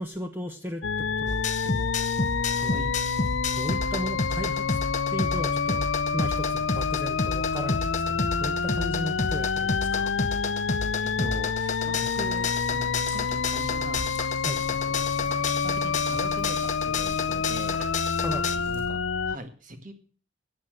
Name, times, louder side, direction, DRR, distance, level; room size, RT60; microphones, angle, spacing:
voice 1, 0.0-1.9 2.6-2.9 3.6-4.8 5.1-10.1 14.4-14.6 18.1-18.6, equal, 10° right, 4 dB, 1.1 m, -36 dB
sound 1, 0.8-19.4, left 5 dB, 70° left, 0.7 m, -28 dB
sound 2, 1.3-18.6, left 4 dB, 35° left, 0.9 m, -31 dB
voice 2, 2.6-2.9 11.0-14.1 14.9-15.3 15.6-17.8 18.7-19.9, right 1 dB, 40° right, 8 dB, 1.8 m, -41 dB
sound 3, 12.1-18.9, left 1 dB, 5° left, 3.1 m, -46 dB
14.5 x 8.7 x 7.7 m, 0.41 s
head